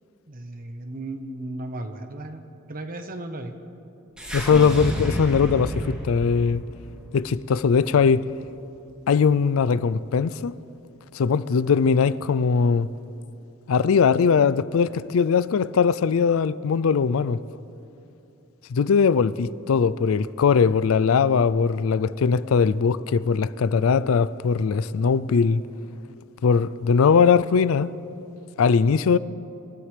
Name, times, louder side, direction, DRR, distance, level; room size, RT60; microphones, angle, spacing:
voice 1, 0.3-2.4 2.7-3.5, right 1 dB, 45° right, 1.1 m, -35 dB
sound 1, 4.2-8.5, equal, 5° right, 2.9 m, -31 dB
voice 2, 4.3-6.6 7.1-8.2 9.1-10.5 11.1-12.9 13.7-17.4 18.7-25.6 26.4-27.9 28.6-29.2, left 6 dB, 70° left, 0.4 m, -20 dB
27.0 x 14.0 x 3.3 m
head